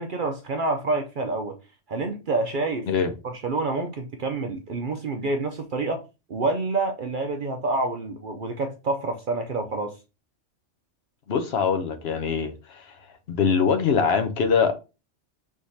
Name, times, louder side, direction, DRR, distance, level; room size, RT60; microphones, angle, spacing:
voice 1, 0.0-1.6 1.9-2.9 3.2-6.0 6.3-10.0, right 3 dB, 55° right, 0.6 m, -27 dB
voice 2, 11.3-13.0 13.3-14.7, left 6 dB, 65° left, 0.9 m, -23 dB
4.7 x 3.5 x 2.7 m
omnidirectional pair, 1.2 m